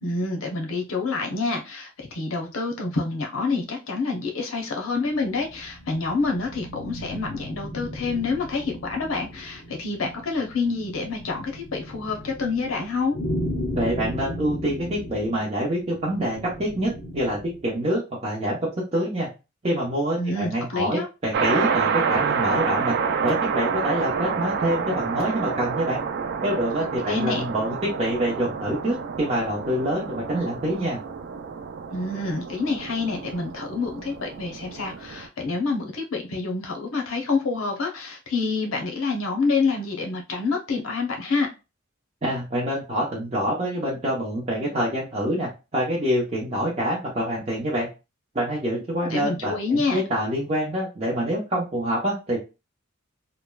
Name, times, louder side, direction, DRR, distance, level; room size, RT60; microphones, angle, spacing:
voice 1, 0.0-13.1 20.2-21.1 27.0-27.4 31.9-41.5 49.0-50.0, left 4 dB, 90° left, 2 dB, 0.8 m, -27 dB
sound 1, 5.1-17.7, equal, 45° left, 0.7 m, -36 dB
voice 2, 13.7-19.3 19.6-22.9 23.2-26.0 26.4-31.0 42.2-47.9 48.3-52.4, equal, 30° right, -6 dB, 0.8 m, -26 dB
sound 2, 21.3-35.3, right 6 dB, 55° right, 0.4 m, -28 dB
3.0 x 2.2 x 2.2 m, 0.27 s
head